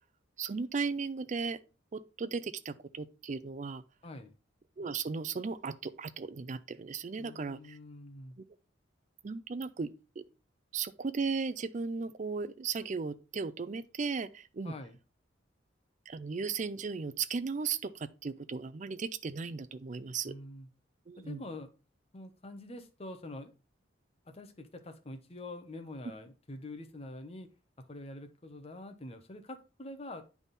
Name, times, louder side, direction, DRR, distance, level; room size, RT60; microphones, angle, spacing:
voice 1, 0.4-1.6 1.9-3.8 4.8-7.8 9.2-9.9 10.2-10.3 10.7-14.7 16.1-20.3 21.1-21.4, right 5 dB, 40° right, 0.4 m, -36 dB
voice 2, 4.0-4.3 7.2-8.4 14.6-15.0 20.2-20.7 21.2-21.7 22.1-23.5 24.2-27.5 27.8-30.2, left 2 dB, 30° left, 0.8 m, -45 dB
8.9 x 3.6 x 4.0 m
head